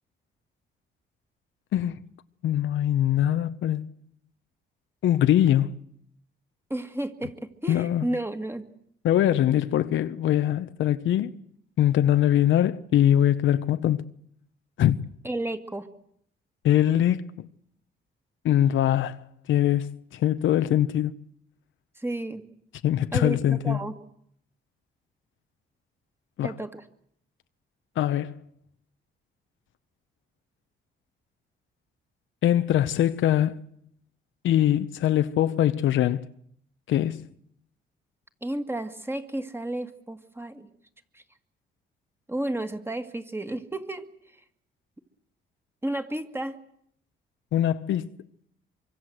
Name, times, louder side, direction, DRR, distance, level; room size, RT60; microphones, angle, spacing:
voice 1, 2.4-3.9 5.0-5.7 7.7-8.0 9.0-11.3 11.8-14.1 14.8-15.1 16.6-17.2 18.4-19.2 19.5-21.1 22.8-23.8 26.4-26.5 28.0-28.3 32.4-33.6 34.4-36.2 36.9-37.3 47.5-48.1, left 11 dB, 75° left, 1.0 m, -22 dB
voice 2, 6.7-8.6 15.2-15.9 22.0-22.4 23.1-24.0 26.4-26.8 38.4-40.7 41.1-41.2 42.3-44.1 45.8-46.6, right 1 dB, 10° right, 2.1 m, -32 dB
24.5 x 24.5 x 7.9 m
cardioid pair, 90°, 20 cm